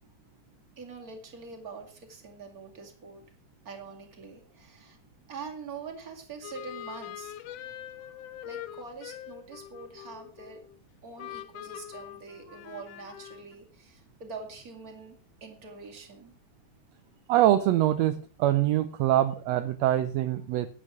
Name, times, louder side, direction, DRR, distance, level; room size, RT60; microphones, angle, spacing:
voice 1, 0.8-3.3 3.6-5.0 5.3-7.3 7.6-7.7 8.4-10.6 11.0-16.3, right 4 dB, 30° right, 3 dB, 2.5 m, -44 dB
sound 1, 6.4-10.8 11.2-13.5, left 12 dB, 75° left, 1.6 m, -43 dB
voice 2, 17.3-20.7, right 13 dB, 75° right, 10 dB, 1.7 m, -24 dB
10.5 x 8.6 x 6.1 m, 0.41 s
omnidirectional pair, 3.3 m